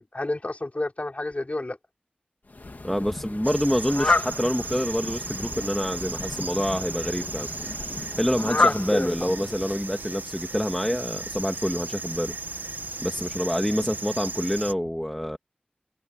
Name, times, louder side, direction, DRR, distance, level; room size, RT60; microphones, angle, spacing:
voice 1, 0.1-1.8 8.6-9.3, left 2 dB, 45° left, 5.1 m, -30 dB
Fowl, 2.5-9.9, left 3 dB, 65° left, 2.0 m, -30 dB
voice 2, 2.8-7.5 8.2-12.4 13.0-15.4, equal, 5° left, 2.3 m, -27 dB
sound 1, 3.4-14.7, right 3 dB, 70° right, 1.0 m, -36 dB
wide cardioid pair, 55°, 3 cm